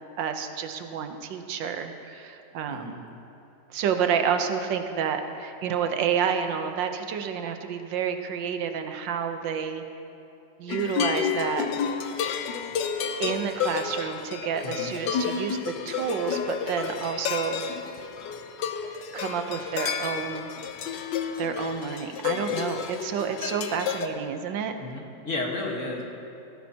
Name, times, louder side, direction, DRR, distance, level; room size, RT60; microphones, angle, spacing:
voice 1, 0.2-2.9 3.7-9.8 10.6-11.7 13.2-17.6 19.1-20.5 21.4-24.7, right 7 dB, 85° right, 7 dB, 1.5 m, -29 dB
voice 2, 2.7-3.0 14.6-14.9 24.8-26.0, left 2 dB, 45° left, -1 dB, 1.7 m, -33 dB
sound 1, 10.7-24.1, left 7 dB, 75° left, 1.3 m, -31 dB
17.5 x 15.0 x 2.8 m, 2.8 s
omnidirectional pair, 1.9 m